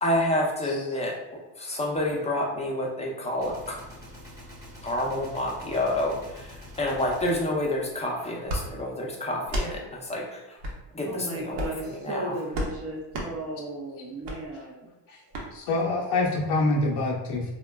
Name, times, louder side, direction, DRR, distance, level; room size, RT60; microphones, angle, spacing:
voice 1, 0.0-1.2 1.6-3.8 4.8-6.4 6.8-10.6 10.9-12.3, left 1 dB, 15° left, -2 dB, 0.5 m, -28 dB
Gunshot gunfire, 3.4-8.6, left 1 dB, 10° right, 0.9 m, -46 dB
sound 1, 8.4-8.6 9.4-9.7 10.6-10.8 11.5-11.8 12.5-12.7 13.1-13.3 14.2-14.4 15.3-15.5, equal, 70° right, 0.9 m, -30 dB
voice 2, 11.0-14.9 15.3-15.4, right 1 dB, 30° right, -1 dB, 0.5 m, -35 dB
voice 3, 15.5-17.4, left 2 dB, 55° left, -2 dB, 0.6 m, -26 dB
3.6 x 2.1 x 2.2 m, 1.0 s
cardioid pair, 110°, 47 cm